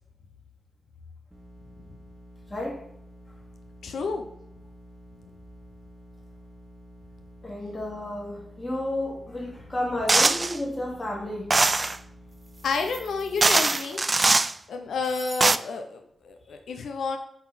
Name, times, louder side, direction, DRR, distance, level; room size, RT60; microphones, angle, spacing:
sound 1, 1.3-13.4, equal, 5° right, 1.3 m, -49 dB
voice 1, 2.5-2.8 7.4-11.6, left 1 dB, 20° left, -1 dB, 2.3 m, -31 dB
voice 2, 3.8-4.2 12.6-14.0 14.7-17.2, left 4 dB, 90° left, 5 dB, 0.8 m, -30 dB
sound 2, 10.1-10.6 11.5-12.0 12.9-13.0 13.4-14.5 15.2-15.6, right 3 dB, 25° right, 0.3 m, -21 dB
8.1 x 4.2 x 5.9 m, 0.73 s
wide cardioid pair, 145°, 0 cm